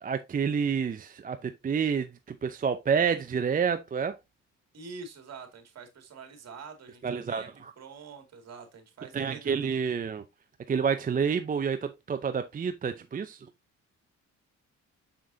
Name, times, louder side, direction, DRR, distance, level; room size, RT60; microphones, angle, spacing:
voice 1, 0.0-4.2 7.0-7.7 9.1-10.2 10.7-13.5, right 6 dB, 30° right, 0.5 m, -29 dB
voice 2, 4.7-7.5 7.8-9.6 9.8-10.0, right 4 dB, 55° right, 2.2 m, -46 dB
6.5 x 5.8 x 2.7 m
cardioid pair, 90°, 30 cm